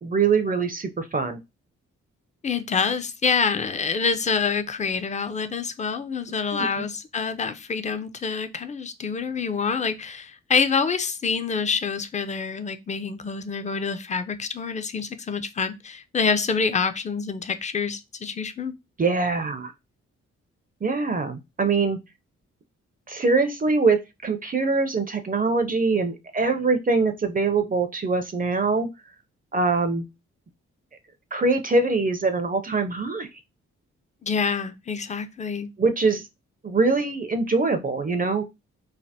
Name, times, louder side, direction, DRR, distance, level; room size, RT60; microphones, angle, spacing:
voice 1, 0.0-1.4 6.5-6.7 19.0-19.7 20.8-22.0 23.1-28.9 29.5-30.0 31.3-33.3 35.8-36.2 36.6-38.4, right 4 dB, 25° right, 0.5 m, -23 dB
voice 2, 2.4-18.7 34.2-35.7, left 5 dB, 25° left, 0.4 m, -26 dB
3.2 x 2.1 x 2.7 m
supercardioid pair, 40°, 31 cm